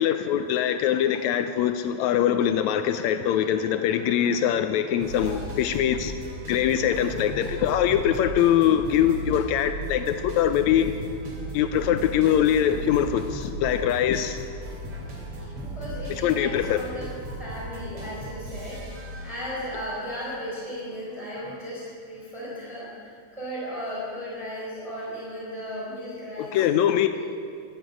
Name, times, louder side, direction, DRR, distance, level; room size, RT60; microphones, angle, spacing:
voice 1, 0.0-6.1 6.5-11.0 11.5-14.4 16.2-16.8 26.4-27.2, left 10 dB, 80° left, 9 dB, 1.8 m, -23 dB
sound 1, 2.4-21.6, right 1 dB, 55° right, 3.8 m, -37 dB
voice 2, 5.1-5.5 15.4-17.1 17.4-18.8 19.2-26.6 27.1-27.2, equal, 10° right, -7 dB, 4.2 m, -36 dB
14.0 x 10.5 x 8.7 m, 2.2 s
omnidirectional pair, 3.4 m